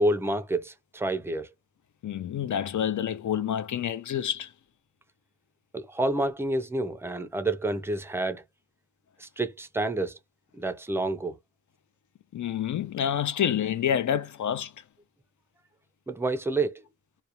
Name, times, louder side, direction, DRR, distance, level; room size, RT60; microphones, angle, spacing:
voice 1, 0.0-1.5 5.7-8.4 9.2-10.2 10.6-11.4 16.1-16.7, right 2 dB, 10° right, 0.4 m, -28 dB
voice 2, 2.0-4.5 12.3-14.7, left 9 dB, 75° left, 0.5 m, -28 dB
2.3 x 2.1 x 2.8 m
wide cardioid pair, 80°, 30 cm